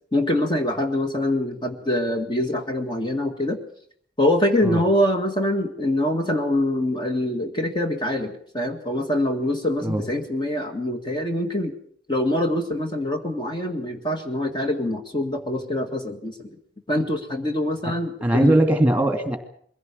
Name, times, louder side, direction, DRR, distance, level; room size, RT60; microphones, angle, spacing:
voice 1, 0.1-3.6 4.2-11.8 12.1-16.6 16.9-18.6, left 1 dB, 25° left, 5 dB, 1.9 m, -24 dB
voice 2, 18.2-19.4, right 1 dB, 10° right, 7 dB, 2.6 m, -20 dB
22.5 x 16.5 x 8.4 m, 0.62 s
head